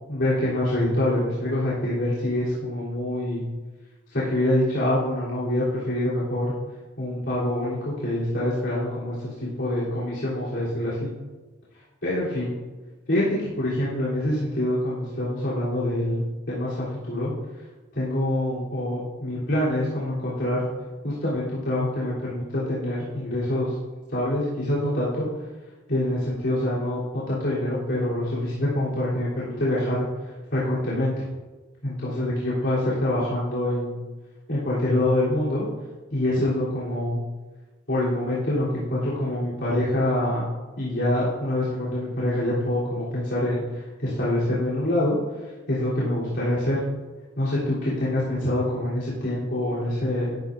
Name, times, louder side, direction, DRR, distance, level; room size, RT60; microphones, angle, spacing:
voice 1, 0.1-3.4 4.1-6.5 7.0-11.1 12.0-12.5 13.1-17.3 17.9-20.7 21.0-23.7 24.1-25.3 25.9-27.0 27.3-30.1 30.5-31.2 31.8-34.0 34.5-35.7 36.1-37.2 37.9-40.5 40.8-43.6 44.0-45.2 45.7-46.8 47.4-50.3, left 1 dB, 70° left, -10 dB, 3.2 m, -25 dB
12.5 x 10.5 x 2.5 m, 1.2 s
head